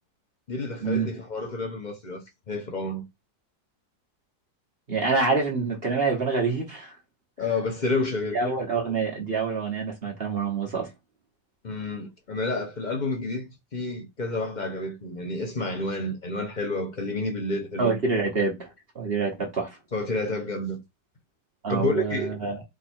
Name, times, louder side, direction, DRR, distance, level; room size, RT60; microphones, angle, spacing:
voice 1, 0.5-3.0 7.4-8.4 11.6-18.0 19.9-20.8 21.7-22.4, left 2 dB, 50° left, 0.5 m, -30 dB
voice 2, 4.9-6.9 8.3-10.9 17.8-18.7 18.9-19.8 21.6-22.6, right 4 dB, 40° right, 1.1 m, -26 dB
4.7 x 2.5 x 4.3 m
omnidirectional pair, 2.0 m